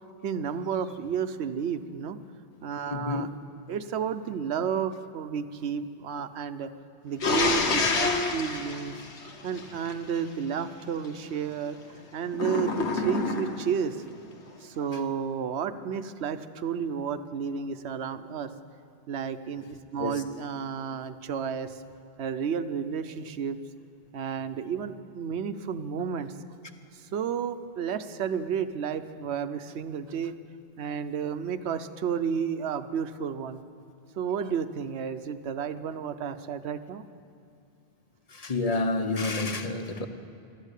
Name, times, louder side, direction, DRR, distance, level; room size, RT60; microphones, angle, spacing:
voice 1, 0.2-2.2 2.6-3.3 3.7-6.7 7.0-8.9 9.4-11.8 12.1-14.0 14.6-18.5 19.1-21.8 22.2-23.6 24.1-26.3 26.9-30.3 30.8-33.6 34.2-37.0, right 7 dB, 75° right, 11 dB, 1.0 m, -32 dB
voice 2, 2.9-3.3 20.0-20.2 38.3-40.1, left 2 dB, 40° left, 8 dB, 0.9 m, -29 dB
sound 1, 7.2-9.9 12.3-13.8, left 3 dB, 90° left, 1.5 m, -27 dB
13.0 x 12.5 x 8.2 m, 2.5 s
omnidirectional pair, 1.1 m